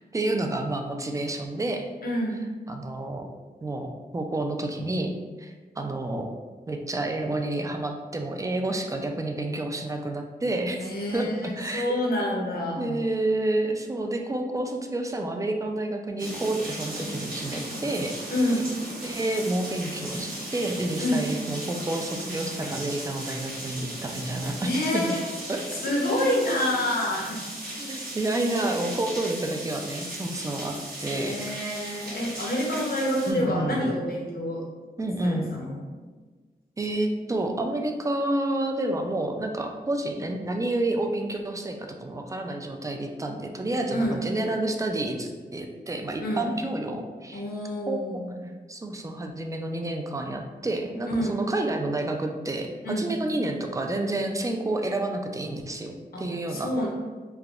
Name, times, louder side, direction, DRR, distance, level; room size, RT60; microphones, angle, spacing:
voice 1, 0.1-1.9 2.7-3.3 3.6-5.1 5.4-6.3 6.7-11.9 12.8-18.1 19.0-25.2 25.5-25.6 26.6-26.7 27.8-30.8 31.0-31.4 33.3-33.8 35.0-35.5 36.8-47.4 47.9-48.2 48.7-56.7, right 2 dB, 20° right, 4 dB, 0.3 m, -29 dB
voice 2, 2.0-2.4 10.8-13.0 18.3-18.7 21.0-21.2 24.6-25.3 25.8-27.4 31.1-34.6 35.2-35.8 43.9-44.2 46.2-46.5 47.3-48.4 51.1-51.4 52.8-53.1 56.1-56.9, left 1 dB, 60° left, -2 dB, 0.7 m, -28 dB
sound 1, 16.2-33.3, right 1 dB, 55° right, 1.0 m, -37 dB
3.3 x 2.2 x 2.4 m, 1.4 s
wide cardioid pair, 70°, 17 cm